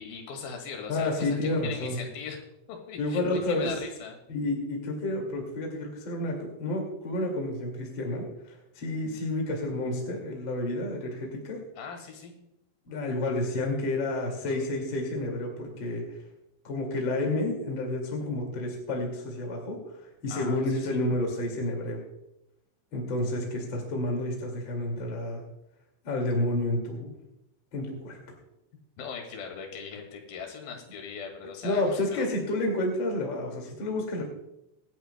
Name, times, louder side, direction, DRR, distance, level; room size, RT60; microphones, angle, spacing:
voice 1, 0.0-2.4 2.7-4.2 11.7-12.4 20.3-20.6 20.9-21.0 29.0-32.3, left 6 dB, 60° left, 2 dB, 3.6 m, -40 dB
voice 2, 0.9-2.0 3.0-3.7 4.3-11.6 12.9-16.0 16.6-20.0 20.2-22.0 22.9-25.4 26.0-27.2 27.7-28.2 31.6-34.2, left 1 dB, 35° left, 0 dB, 2.2 m, -30 dB
25.5 x 11.0 x 2.2 m, 0.87 s
omnidirectional pair, 5.0 m